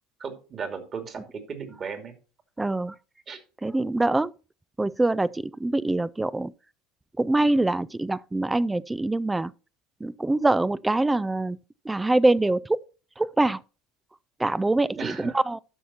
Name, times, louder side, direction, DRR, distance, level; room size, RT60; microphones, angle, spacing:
voice 1, 0.2-2.1 3.3-3.4 15.0-15.4, right 6 dB, 40° right, 2.6 m, -36 dB
voice 2, 2.6-2.9 3.6-4.3 4.8-6.5 7.2-9.5 10.0-11.6 11.9-12.8 13.2-13.6 14.4-15.2 15.5-15.6, right 2 dB, 10° right, 0.4 m, -24 dB
12.5 x 5.7 x 4.3 m
hypercardioid pair, 75°, 0 cm